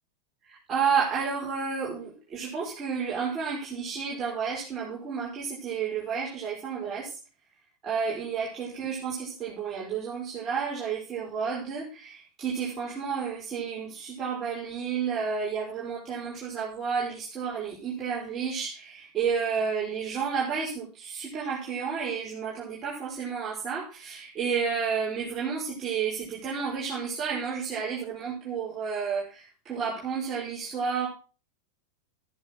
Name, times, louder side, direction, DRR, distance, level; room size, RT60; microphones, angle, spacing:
voice 1, 0.4-7.2 7.8-31.1, right 6 dB, 25° right, -6 dB, 5.6 m, -31 dB
14.0 x 10.5 x 4.8 m, 0.35 s
figure-of-eight pair, 90°, 0 cm